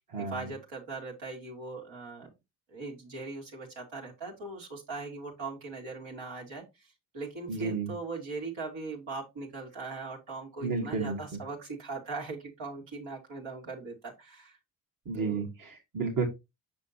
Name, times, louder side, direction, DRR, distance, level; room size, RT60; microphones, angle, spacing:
voice 1, 0.2-2.3 2.7-14.6 15.2-15.4, right 3 dB, 70° right, -1 dB, 2.3 m, -40 dB
voice 2, 7.5-7.9 10.6-11.2 15.0-16.2, right 4 dB, 45° right, 1 dB, 1.7 m, -31 dB
6.2 x 5.6 x 2.8 m, 0.22 s
supercardioid pair, 50°, 47 cm